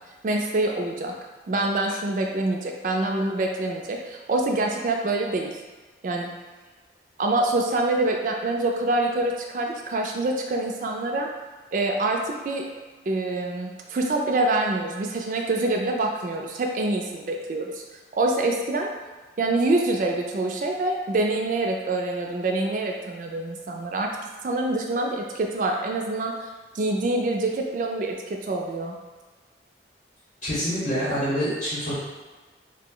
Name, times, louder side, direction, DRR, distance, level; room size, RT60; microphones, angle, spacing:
voice 1, 0.2-1.1 1.5-5.6 6.0-6.3 7.2-11.3 11.7-12.6 13.1-17.8 18.2-18.9 19.4-24.2 24.4-26.5 26.7-28.9, right 2 dB, 45° right, 1 dB, 0.3 m, -25 dB
voice 2, 30.4-31.9, equal, 40° left, -9 dB, 0.8 m, -26 dB
2.7 x 2.0 x 3.7 m, 1.3 s
head